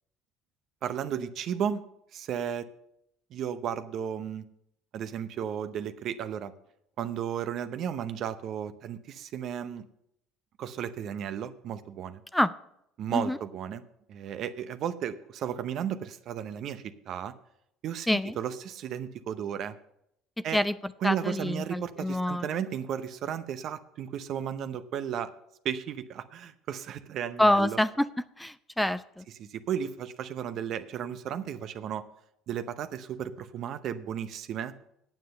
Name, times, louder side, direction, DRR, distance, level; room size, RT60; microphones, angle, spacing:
voice 1, 0.8-1.8 2.1-2.7 3.3-4.4 4.9-6.5 7.0-9.8 10.6-12.2 13.0-13.8 14.1-17.3 17.8-19.8 20.4-20.6 21.0-25.3 25.6-27.8 29.4-32.0 32.5-34.7, right 9 dB, 60° right, 11 dB, 0.7 m, -34 dB
voice 2, 18.1-18.4 20.5-22.5 27.4-28.1 28.4-29.2, left 1 dB, 5° left, 14 dB, 0.5 m, -26 dB
9.1 x 7.6 x 6.6 m, 0.76 s
hypercardioid pair, 70°, 0 cm